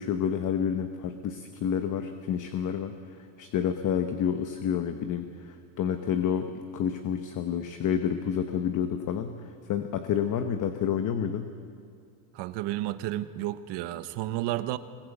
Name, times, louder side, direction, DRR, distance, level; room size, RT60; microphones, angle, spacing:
voice 1, 0.0-11.5, left 8 dB, 40° left, 8 dB, 1.0 m, -29 dB
voice 2, 12.3-14.8, right 15 dB, 55° right, 13 dB, 1.0 m, -31 dB
21.5 x 20.5 x 8.1 m, 2.3 s
cardioid pair, 160°, 48 cm